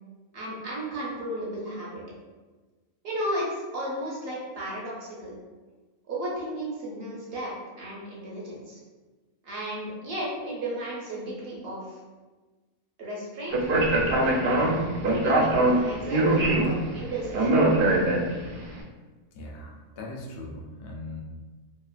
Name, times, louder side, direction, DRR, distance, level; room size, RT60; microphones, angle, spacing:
voice 1, 0.3-2.0 3.0-5.3 6.1-8.8 9.4-12.0 13.0-13.6 13.9-14.9 15.2-17.6, right 1 dB, 55° right, -4 dB, 0.8 m, -34 dB
Speech, 13.5-18.6, right 2 dB, 75° right, 0.5 m, -23 dB
voice 2, 19.3-21.2, left 2 dB, 65° left, 0 dB, 0.6 m, -39 dB
2.9 x 2.3 x 2.4 m, 1.3 s
omnidirectional pair, 1.4 m